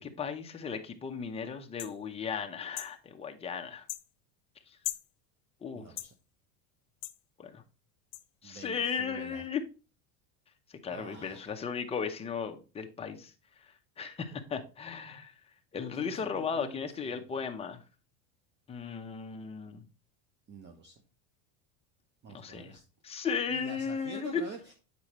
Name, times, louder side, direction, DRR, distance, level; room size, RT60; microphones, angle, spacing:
voice 1, 0.0-3.9 4.7-4.8 5.6-5.9 7.4-7.6 8.4-9.6 10.7-13.3 13.6-15.3 15.7-17.8 18.7-19.8 22.3-22.7 23.0-24.4, left 6 dB, 15° left, 5 dB, 0.7 m, -36 dB
sound 1, 1.8-2.0 2.8-2.9 3.9-4.1 4.8-5.1 6.0-6.1 7.0-7.2 8.1-8.2, left 18 dB, 80° left, 0.7 m, -38 dB
voice 2, 5.7-6.1 8.4-9.4 10.9-11.6 15.9-17.2 20.5-21.0 22.2-22.8 23.5-24.7, right 4 dB, 25° right, 4 dB, 0.8 m, -47 dB
8.2 x 4.8 x 3.0 m, 0.34 s
supercardioid pair, 150°, 39 cm